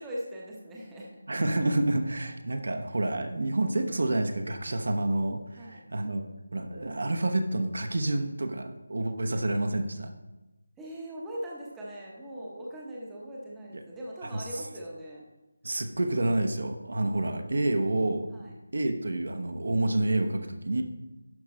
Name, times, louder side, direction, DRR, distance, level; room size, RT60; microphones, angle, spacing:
voice 1, 0.0-1.1 5.5-5.8 10.8-15.2 18.3-18.5, equal, 5° right, -5 dB, 0.8 m, -40 dB
voice 2, 1.3-6.3 6.5-10.1 14.3-14.4 15.6-18.3 18.7-20.8, right 2 dB, 65° right, 6 dB, 1.0 m, -28 dB
11.0 x 5.0 x 4.3 m, 1.0 s
figure-of-eight pair, 175°, 0 cm